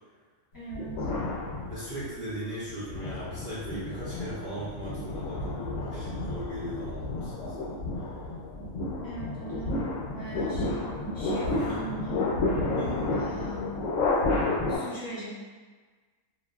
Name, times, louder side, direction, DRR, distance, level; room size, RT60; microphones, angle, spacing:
voice 1, 0.5-1.1 9.0-12.2 13.1-13.7 14.7-15.3, right 2 dB, 25° left, -10 dB, 0.5 m, -40 dB
sound 1, 0.7-2.1 2.7-14.8, left 2 dB, 75° left, 0.9 m, -31 dB
voice 2, 1.7-7.8 11.4-11.8 12.7-13.1, right 1 dB, 55° right, -11 dB, 0.5 m, -38 dB
2.5 x 2.4 x 2.3 m, 1.4 s
omnidirectional pair, 1.4 m